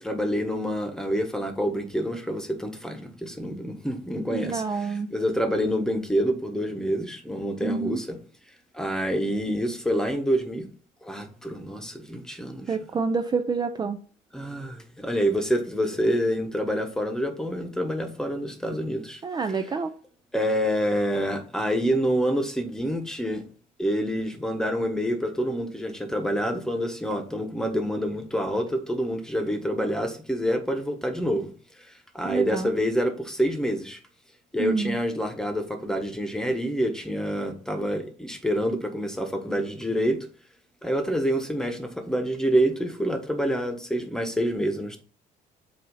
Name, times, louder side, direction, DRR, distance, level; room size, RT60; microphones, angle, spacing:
voice 1, 0.0-4.6 5.1-8.2 8.7-10.7 11.0-12.8 14.3-19.2 20.3-23.4 23.8-31.5 31.8-34.0 34.5-40.3 40.8-45.0, equal, 5° left, 1.2 m, -27 dB
voice 2, 4.3-5.1 7.6-8.0 12.7-14.0 19.2-19.9 32.2-32.7 34.6-35.0, right 4 dB, 25° right, 0.5 m, -28 dB
7.7 x 2.8 x 5.5 m
cardioid pair, 110°, 17 cm